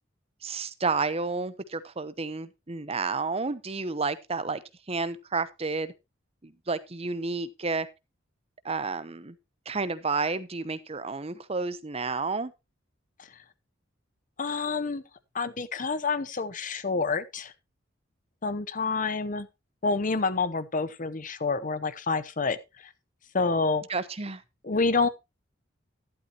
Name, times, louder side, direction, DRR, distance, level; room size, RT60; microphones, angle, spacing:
voice 1, 0.4-4.6 4.9-5.9 6.4-7.9 8.6-9.4 9.7-12.5 23.9-24.4, right 4 dB, 30° right, 0.8 m, -31 dB
voice 2, 14.4-15.0 15.3-17.5 18.4-19.5 19.8-22.9 23.3-23.8 24.6-25.1, left 4 dB, 40° left, 0.8 m, -28 dB
11.5 x 11.5 x 2.9 m
head